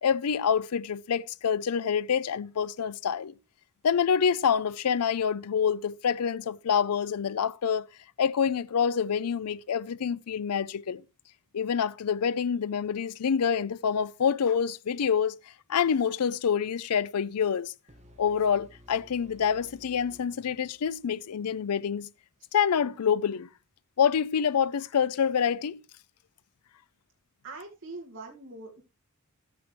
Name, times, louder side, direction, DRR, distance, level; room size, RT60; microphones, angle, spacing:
voice 1, 0.0-3.3 3.8-7.9 8.2-11.0 11.5-15.4 15.7-17.7 18.2-22.1 22.5-23.5 24.0-25.8, left 7 dB, 85° left, 0.5 m, -27 dB
sound 1, 17.9-21.8, left 1 dB, 30° right, 1.2 m, -56 dB
voice 2, 27.4-28.8, right 3 dB, 60° right, 2.2 m, -43 dB
12.0 x 9.1 x 3.2 m
head